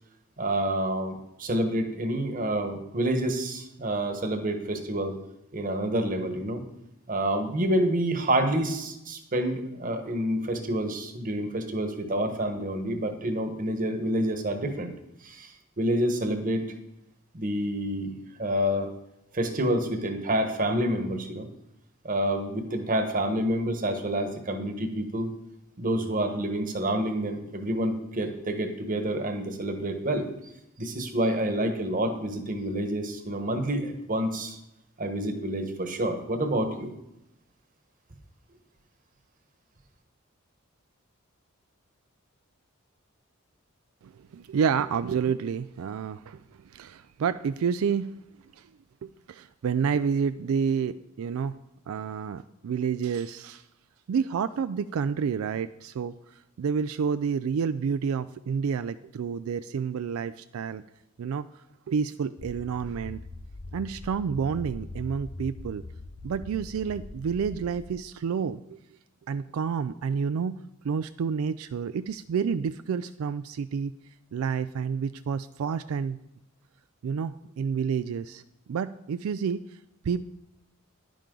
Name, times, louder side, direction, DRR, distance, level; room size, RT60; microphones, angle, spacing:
voice 1, 0.4-5.1 5.5-6.6 7.1-14.9 15.2-16.6 17.3-18.1 18.4-18.9 19.3-21.5 22.0-25.3 25.8-30.3 30.8-34.6 35.0-36.9, right 1 dB, 40° right, 7 dB, 1.2 m, -28 dB
voice 2, 44.0-46.4 46.7-48.1 48.6-48.7 49.0-51.6 51.9-53.6 54.1-56.1 56.6-60.8 61.2-61.5 61.9-63.2 63.7-65.8 66.2-68.8 69.3-70.6 70.8-74.0 74.3-76.2 77.0-78.4 78.7-79.6 80.1-80.3, right 6 dB, 85° right, 12 dB, 0.3 m, -29 dB
sound 1, 62.4-67.9, left 2 dB, 35° left, 0.6 m, -42 dB
10.5 x 10.0 x 3.8 m, 0.86 s
head